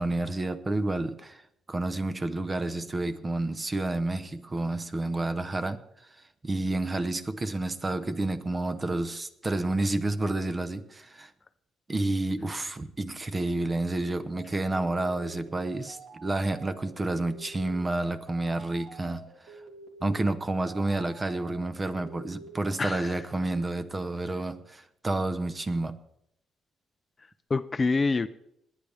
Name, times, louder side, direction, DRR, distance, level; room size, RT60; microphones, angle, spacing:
voice 1, 0.0-1.4 1.7-6.1 6.4-11.3 11.9-19.6 20.0-26.0, right 2 dB, 25° right, 1.0 m, -30 dB
sound 1, 14.3-23.1, right 3 dB, 75° right, 3.1 m, -48 dB
voice 2, 22.8-23.3 27.2-28.3, left 3 dB, 30° left, 0.5 m, -27 dB
20.0 x 10.0 x 3.5 m
cardioid pair, 90°, 0 cm